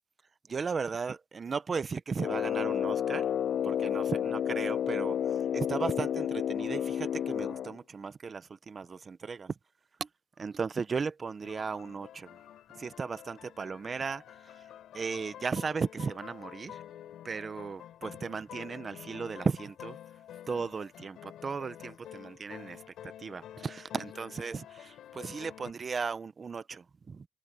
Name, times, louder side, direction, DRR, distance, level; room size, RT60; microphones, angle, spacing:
voice 1, 0.5-3.2 3.6-5.2 5.5-8.4 8.7-9.5 10.4-12.3 12.8-14.2 14.9-16.7 17.2-20.0 20.5-22.8 23.2-27.2, right 5 dB, 30° right, 0.6 m, -35 dB
Brass instrument, 2.2-7.8, left 9 dB, 55° left, 0.4 m, -31 dB
sound 1, 11.4-25.7, left 11 dB, 80° left, 3.5 m, -49 dB
open air
cardioid pair, 170°, 0 cm